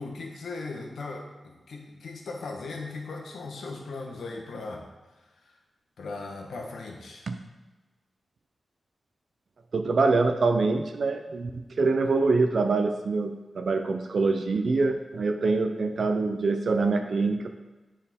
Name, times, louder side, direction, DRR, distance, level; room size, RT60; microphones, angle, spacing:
voice 1, 0.0-4.9 5.4-5.5 6.0-7.3, left 3 dB, 85° left, 1 dB, 1.1 m, -38 dB
voice 2, 9.7-17.5, right 3 dB, 55° right, 6 dB, 0.5 m, -25 dB
10.0 x 4.4 x 3.6 m, 1.2 s
wide cardioid pair, 150°, 0 cm